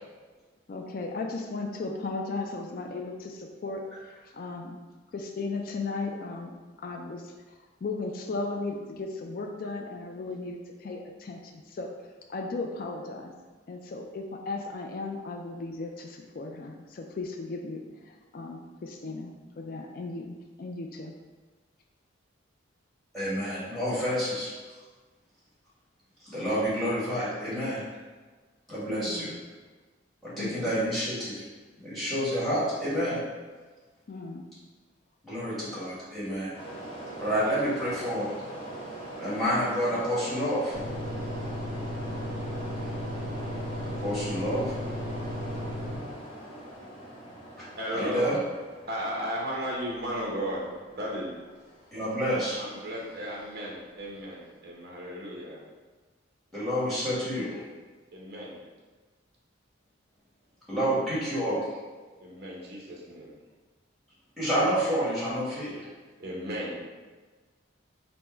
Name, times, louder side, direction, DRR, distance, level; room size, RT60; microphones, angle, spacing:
voice 1, 0.7-4.8 5.1-7.3 7.8-11.9 12.3-13.3 13.7-21.1 28.9-29.4 30.3-30.7 34.1-34.5, left 3 dB, 45° left, 2 dB, 0.3 m, -36 dB
voice 2, 23.1-24.5 26.2-27.8 28.7-29.3 30.2-31.4 31.8-33.2 35.2-36.5 37.2-38.3 39.2-40.7 43.8-44.8 47.6-47.7 47.9-48.3 51.9-52.6 56.5-57.6 60.7-61.6 64.4-65.9, equal, ahead, -11 dB, 1.4 m, -29 dB
sound 1, 36.5-54.2, right 1 dB, 30° left, 0.8 m, -42 dB
sound 2, 40.7-46.0, left 1 dB, 25° right, 1.0 m, -35 dB
voice 3, 47.8-48.4 48.9-51.3 52.6-55.6 58.1-58.6 62.2-63.3 66.2-66.8, equal, 50° right, -4 dB, 0.9 m, -35 dB
4.3 x 2.1 x 4.3 m, 1.3 s
head